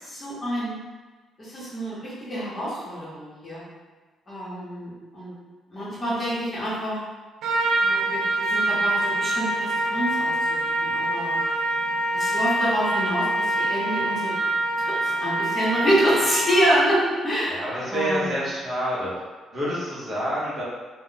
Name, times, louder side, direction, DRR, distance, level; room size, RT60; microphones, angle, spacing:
voice 1, 0.0-0.8 1.4-3.6 4.3-5.3 5.7-7.0 7.8-11.4 12.1-14.3 15.0-17.6 17.9-18.3, equal, 20° left, -9 dB, 1.0 m, -27 dB
Trumpet, 7.4-16.8, right 1 dB, 70° right, 0.4 m, -25 dB
voice 2, 17.5-19.1 19.5-20.6, equal, 30° right, -7 dB, 0.8 m, -27 dB
2.3 x 2.1 x 3.8 m, 1.3 s
cardioid pair, 175°, 0 cm